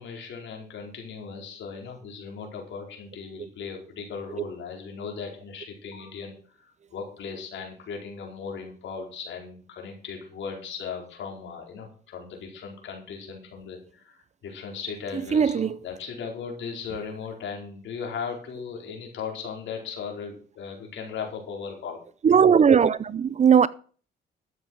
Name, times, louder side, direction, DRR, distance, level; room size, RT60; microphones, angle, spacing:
voice 1, 0.0-22.0, left 6 dB, 70° left, 4.7 m, -37 dB
voice 2, 15.3-15.7 22.2-23.7, right 7 dB, 35° right, 0.5 m, -18 dB
12.5 x 7.8 x 6.3 m
cardioid pair, 90°, 20 cm